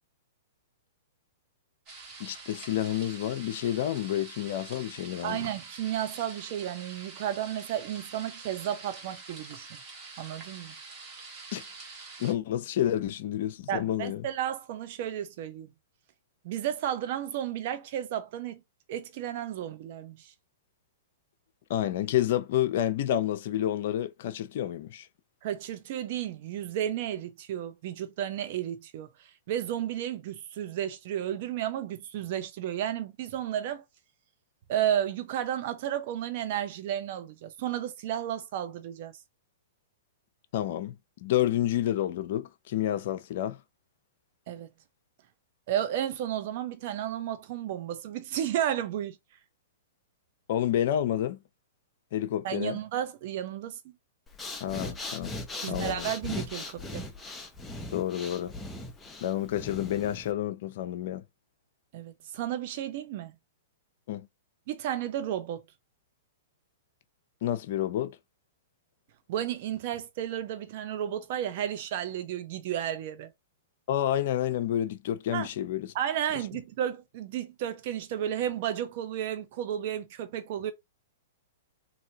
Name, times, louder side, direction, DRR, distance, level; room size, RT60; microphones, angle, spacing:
sound 1, 1.9-12.3, right 4 dB, 35° right, 1.5 m, -46 dB
voice 1, 2.2-5.5 11.5-11.6 12.2-14.2 21.7-25.1 40.5-43.6 50.5-51.4 52.1-52.8 54.6-55.4 55.6-56.1 57.9-58.5 59.2-61.2 64.1-64.3 67.4-68.2 73.9-75.9, left 12 dB, 60° left, 0.5 m, -29 dB
voice 2, 5.2-9.8 10.2-10.7 13.7-15.7 16.4-18.6 18.9-20.3 25.4-33.8 34.7-39.1 44.5-44.7 45.7-49.2 52.4-53.9 55.6-57.1 61.9-63.3 64.7-65.6 69.3-73.3 75.3-75.5 75.9-80.7, right 11 dB, 55° right, 0.7 m, -33 dB
Breathing, 54.3-60.3, left 2 dB, 10° left, 0.7 m, -39 dB
3.1 x 2.7 x 2.8 m
hypercardioid pair, 130°, 0 cm